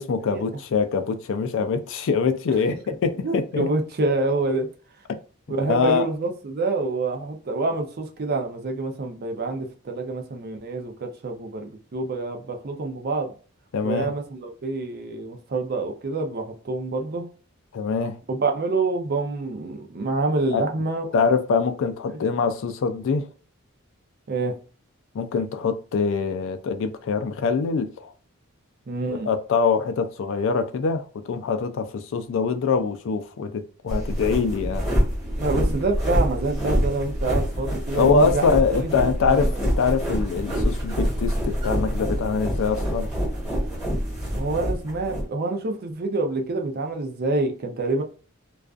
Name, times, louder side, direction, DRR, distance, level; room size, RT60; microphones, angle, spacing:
voice 1, 0.0-3.7 5.7-6.1 13.7-14.1 17.7-18.2 20.5-20.6 21.1-23.3 25.1-28.1 29.3-34.9 37.9-43.1, left 5 dB, 60° left, 0.3 m, -24 dB
voice 2, 3.2-4.7 5.5-13.3 13.8-17.3 18.3-21.0 24.3-24.6 28.9-29.3 35.2-38.9 39.2-39.4 44.3-48.0, right 3 dB, 45° right, 0.5 m, -27 dB
sound 1, 33.9-45.2, equal, 5° right, 1.2 m, -26 dB
2.4 x 2.3 x 2.3 m
head